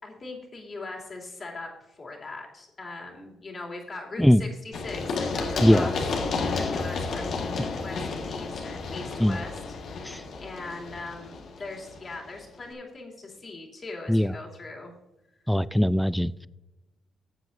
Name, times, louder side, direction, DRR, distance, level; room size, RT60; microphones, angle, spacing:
voice 1, 0.0-5.9 6.6-7.4 7.7-14.9, left 3 dB, 35° left, -1 dB, 2.7 m, -40 dB
Run, 4.7-12.4, left 4 dB, 65° left, 1.6 m, -32 dB
voice 2, 15.5-16.5, equal, 5° left, 18 dB, 0.3 m, -21 dB
15.0 x 7.7 x 2.6 m, 1.0 s
cardioid pair, 90°, 0 cm